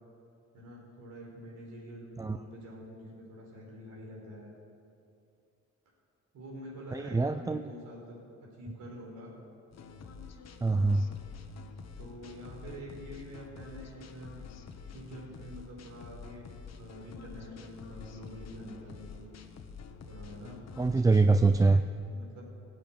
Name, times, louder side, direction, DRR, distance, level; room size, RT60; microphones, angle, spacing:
voice 1, 0.5-4.5 6.3-9.3 10.7-10.9 12.0-14.4 14.9-16.5 16.7-19.3 20.0-20.6 22.0-22.4, equal, 80° right, -2 dB, 4.8 m, -46 dB
voice 2, 6.9-7.7 10.6-11.0 20.8-21.8, right 3 dB, 10° right, 9 dB, 0.4 m, -24 dB
sound 1, 9.7-21.6, left 5 dB, 60° left, 1.3 m, -48 dB
15.5 x 8.5 x 9.1 m, 2.6 s
cardioid pair, 90°, 30 cm